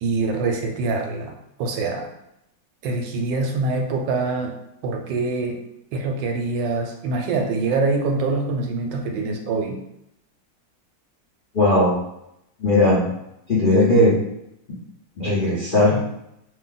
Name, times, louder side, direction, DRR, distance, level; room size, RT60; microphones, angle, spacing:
voice 1, 0.0-2.1 2.8-4.5 4.8-5.6 5.9-9.8, right 3 dB, 80° right, 3 dB, 1.2 m, -24 dB
voice 2, 11.5-12.0 12.6-13.1 13.5-14.2 15.2-16.0, left 1 dB, 40° left, -10 dB, 0.7 m, -17 dB
2.7 x 2.7 x 3.8 m, 0.82 s
omnidirectional pair, 2.0 m